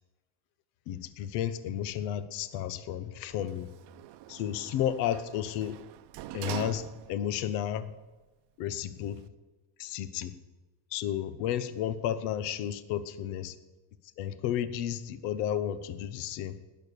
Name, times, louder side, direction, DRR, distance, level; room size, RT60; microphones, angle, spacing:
voice 1, 0.9-3.7 4.3-5.8 6.3-7.9 8.6-9.2 9.8-10.3 10.9-13.5 14.2-16.6, left 10 dB, 80° left, 14 dB, 1.0 m, -32 dB
Sliding door, 3.3-7.4 7.8-7.9, right 14 dB, 60° right, 0.7 m, -43 dB
18.5 x 6.9 x 6.7 m, 1.2 s
cardioid pair, 150°, 46 cm